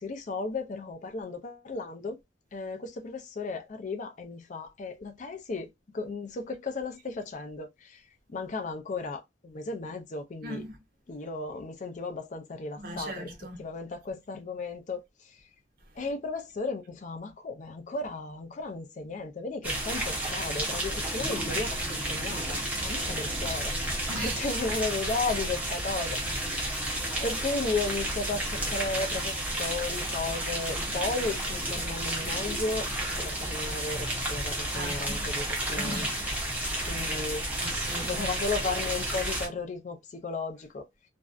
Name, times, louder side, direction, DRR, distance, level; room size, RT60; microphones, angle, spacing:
voice 1, 0.0-2.2 2.5-10.7 11.1-13.3 13.6-15.5 16.0-23.8 24.1-26.2 27.2-36.1 36.8-37.5 38.0-40.9, left 3 dB, 40° left, 0.4 m, -35 dB
voice 2, 10.4-10.8 12.8-13.6 24.1-24.4 31.2-31.3 34.7-35.3 35.8-37.1 37.6-38.2, right 1 dB, 45° right, 0.6 m, -39 dB
sound 1, 19.6-39.5, right 1 dB, 10° right, 0.6 m, -31 dB
2.5 x 2.1 x 2.3 m
head